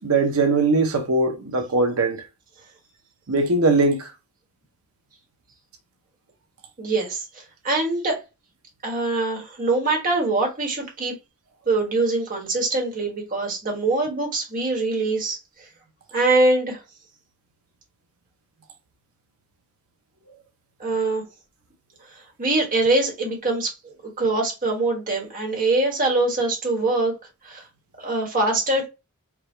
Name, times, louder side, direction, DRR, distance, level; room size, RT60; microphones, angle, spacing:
voice 1, 0.0-2.2 3.3-4.1, right 3 dB, 70° right, 0.8 m, -20 dB
voice 2, 6.8-8.2 8.8-11.1 11.7-15.7 16.1-16.8 20.8-21.2 22.4-27.1 27.4-27.6 28.0-28.9, right 2 dB, 40° right, 1.4 m, -23 dB
4.7 x 2.3 x 3.2 m
head